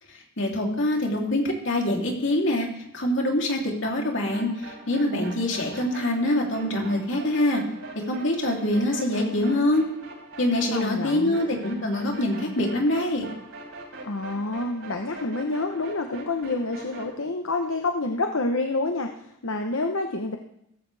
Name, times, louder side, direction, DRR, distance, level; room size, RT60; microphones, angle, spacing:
voice 1, 0.4-2.7 2.9-4.5 4.9-7.6 8.1-9.8 10.4-13.3, left 1 dB, 60° left, 0 dB, 3.2 m, -24 dB
sound 1, 4.3-17.1, right 2 dB, 90° right, 7.6 m, -42 dB
voice 2, 10.7-11.4 14.0-19.1 19.4-20.4, left 2 dB, 75° left, 4 dB, 1.0 m, -28 dB
17.0 x 15.0 x 3.5 m, 0.77 s
head